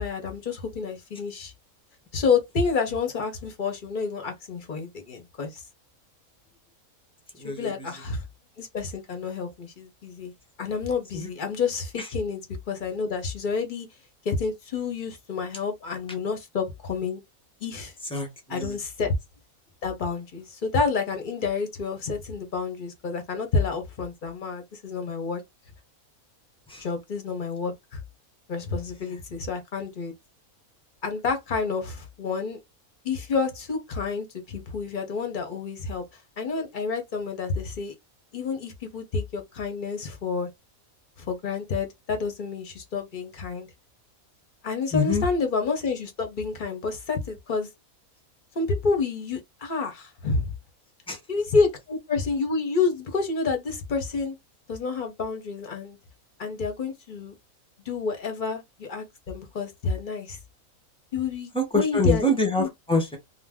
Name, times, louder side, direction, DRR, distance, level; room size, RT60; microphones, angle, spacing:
voice 1, 0.0-1.5 2.1-5.6 7.4-8.2 8.6-10.3 10.6-12.4 12.7-13.9 14.2-17.2 17.6-17.9 18.5-19.2 19.8-25.4 26.8-28.0 28.5-30.1 31.0-32.6 33.0-36.0 36.4-37.9 38.3-40.5 41.2-43.7 44.6-47.7 48.5-50.5 51.3-54.4 54.7-56.0 56.4-57.3 57.9-60.4 61.1-62.3 62.6-62.7, left 4 dB, 50° left, 0.6 m, -29 dB
voice 2, 7.4-8.0 11.1-11.3 12.0-12.1 18.1-18.8 26.7-26.9 44.9-45.2 51.1-51.2 61.5-63.2, left 1 dB, 10° left, 0.4 m, -26 dB
2.5 x 2.1 x 3.4 m
omnidirectional pair, 1.5 m